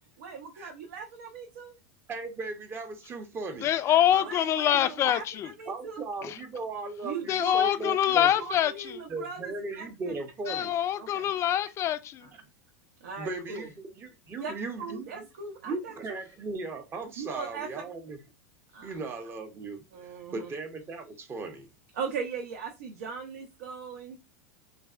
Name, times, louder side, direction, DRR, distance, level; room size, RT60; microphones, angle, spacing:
voice 1, 0.2-1.8 4.2-6.1 7.0-7.8 8.1-10.2 11.0-11.3 13.0-13.7 14.4-14.5 14.8-15.9 17.2-17.8 18.7-18.9 19.9-20.5 21.9-24.2, right 5 dB, 75° right, 0.5 m, -39 dB
voice 2, 2.1-3.7 4.1-4.3 5.0-5.1 5.7-8.3 9.1-10.7 13.2-15.1 15.7-18.2 18.8-21.7, right 3 dB, 30° right, 0.6 m, -37 dB
voice 3, 3.6-5.5 6.2-6.4 7.3-9.0 10.5-12.3, left 11 dB, 35° left, 0.3 m, -25 dB
3.2 x 2.1 x 2.4 m
hypercardioid pair, 105°, 8 cm